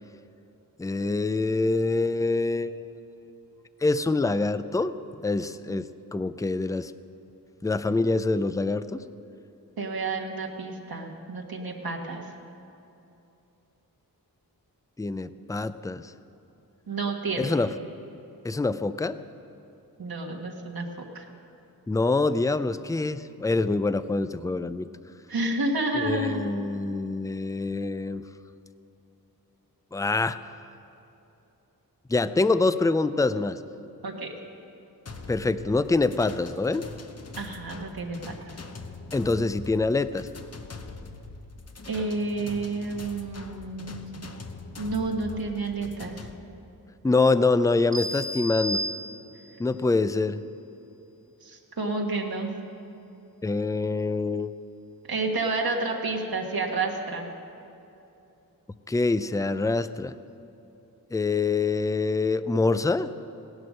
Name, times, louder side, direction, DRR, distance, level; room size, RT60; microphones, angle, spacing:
voice 1, 0.8-2.8 3.8-4.9 5.2-6.9 7.6-9.0 15.0-16.1 17.4-17.7 18.4-19.2 21.9-24.9 26.0-28.2 29.9-30.4 32.1-33.6 35.3-36.8 39.1-40.3 47.0-48.8 49.6-50.4 53.4-54.5 58.9-60.1 61.1-63.1, left 3 dB, 10° left, 13 dB, 0.4 m, -25 dB
voice 2, 9.8-12.3 16.9-17.5 20.0-21.3 25.3-26.4 34.0-34.3 37.4-38.5 41.9-44.1 44.8-46.3 51.4-52.5 55.1-57.3, right 3 dB, 75° right, 0 dB, 1.5 m, -30 dB
sound 1, 35.1-46.4, left 3 dB, 40° left, 0.9 m, -43 dB
sound 2, 47.9-49.6, equal, 45° right, 1.4 m, -33 dB
17.0 x 11.0 x 6.4 m, 2.9 s
wide cardioid pair, 105°, 37 cm